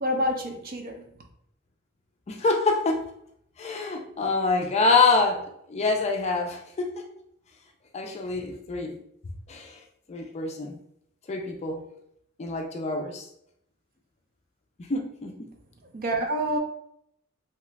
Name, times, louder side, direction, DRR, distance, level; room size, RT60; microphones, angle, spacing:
voice 1, 0.0-1.0 15.9-16.6, equal, 45° right, 3 dB, 0.5 m, -27 dB
voice 2, 2.3-3.1 3.6-7.1 7.9-9.0 9.5-9.8 10.1-10.8 11.3-11.8 12.4-13.3 14.9-15.5, left 3 dB, 30° left, 3 dB, 0.4 m, -26 dB
2.9 x 2.3 x 3.3 m, 0.73 s
head